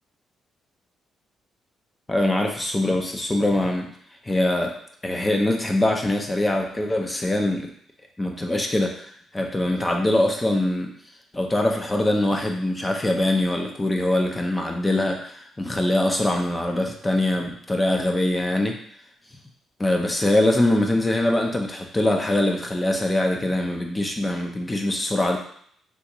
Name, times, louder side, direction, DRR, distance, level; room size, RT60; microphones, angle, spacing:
voice 1, 2.1-3.9 4.2-4.8 5.0-7.7 8.2-10.9 11.3-18.8 19.8-25.4, left 1 dB, 20° left, 2 dB, 0.5 m, -23 dB
3.5 x 2.4 x 2.9 m, 0.64 s
cardioid pair, 90°, 0 cm